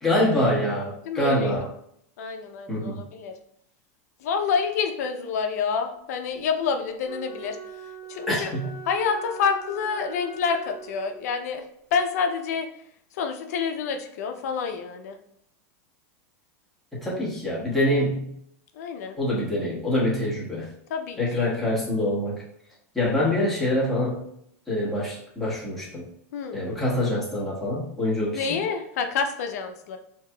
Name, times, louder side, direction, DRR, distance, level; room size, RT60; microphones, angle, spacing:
voice 1, 0.0-1.7 2.7-3.0 8.3-8.7 16.9-18.3 19.2-20.7 21.2-22.4 22.9-24.2 24.7-26.0 26.5-28.6, left 1 dB, ahead, -8 dB, 1.1 m, -25 dB
voice 2, 1.1-1.5 2.2-3.4 4.2-7.6 8.1-8.5 8.9-11.6 11.9-12.7 13.2-15.2 18.8-19.2 20.9-21.4 26.3-26.6 28.3-30.0, left 6 dB, 75° left, 6 dB, 0.6 m, -28 dB
Wind instrument woodwind instrument, 7.0-11.4, right 5 dB, 25° right, 1.1 m, -41 dB
4.7 x 2.8 x 2.3 m, 0.72 s
supercardioid pair, 160°, 9 cm